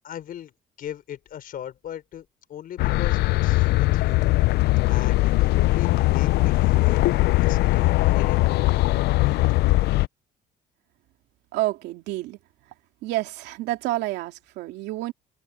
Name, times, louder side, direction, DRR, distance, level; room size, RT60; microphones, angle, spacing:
voice 1, 0.0-4.2 4.9-7.0 7.4-9.5, left 10 dB, 60° left, 5.1 m, -39 dB
sound 1, 2.8-10.1, left 19 dB, 75° left, 0.5 m, -20 dB
voice 2, 11.5-12.4 12.7-12.8 13.0-15.1, right 16 dB, 90° right, 2.6 m, -29 dB
cardioid pair, 110°, 17 cm